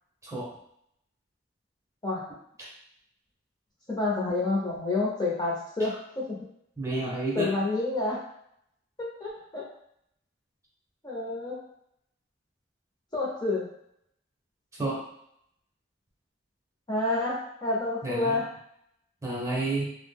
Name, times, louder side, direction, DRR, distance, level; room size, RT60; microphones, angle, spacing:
voice 1, 3.9-6.4 7.3-8.2 9.0-9.6 11.0-11.6 13.1-13.7 16.9-18.5, left 2 dB, 20° left, -5 dB, 0.6 m, -29 dB
voice 2, 6.8-7.5 14.8-15.0 18.0-18.4 19.2-19.9, right 2 dB, 15° right, -5 dB, 0.6 m, -30 dB
2.3 x 2.0 x 3.5 m, 0.73 s
head